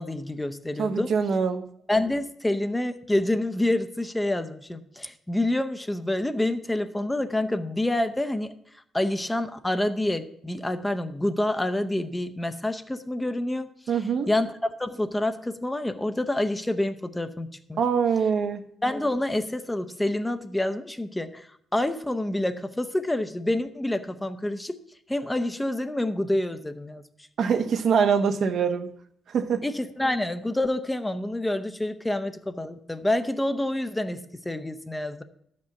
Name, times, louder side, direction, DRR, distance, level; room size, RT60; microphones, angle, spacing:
voice 1, 0.0-1.1 1.9-8.5 8.9-14.0 14.3-17.8 18.8-24.8 25.1-27.0 29.6-35.2, left 1 dB, 10° left, 9 dB, 0.7 m, -27 dB
voice 2, 0.8-1.6 13.9-14.3 17.8-18.6 27.4-28.9 29.3-29.7, right 6 dB, 60° right, 7 dB, 1.0 m, -24 dB
11.0 x 5.3 x 7.0 m, 0.70 s
cardioid pair, 90°, 0 cm